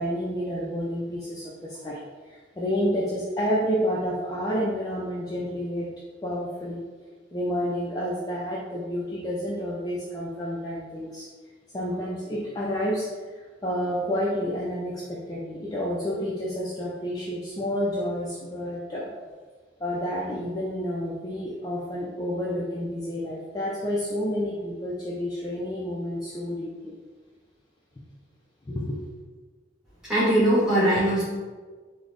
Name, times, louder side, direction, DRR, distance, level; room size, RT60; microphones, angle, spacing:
voice 1, 0.0-5.9 6.2-6.8 7.3-11.3 11.7-13.3 13.6-19.1 19.8-26.9 28.7-29.1, equal, 20° left, -6 dB, 0.3 m, -29 dB
voice 2, 30.1-31.2, right 1 dB, 5° right, -9 dB, 1.2 m, -20 dB
3.8 x 2.0 x 3.2 m, 1.4 s
head